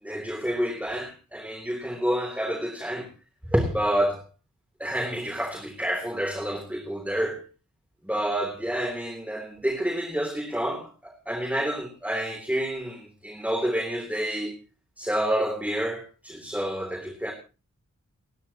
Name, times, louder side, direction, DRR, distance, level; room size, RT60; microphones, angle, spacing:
voice 1, 0.0-3.1 3.5-4.3 4.8-7.4 8.0-14.5 15.0-17.3, equal, 5° right, 3 dB, 3.3 m, -28 dB
29.5 x 10.0 x 3.0 m, 0.33 s
wide cardioid pair, 80°, 30 cm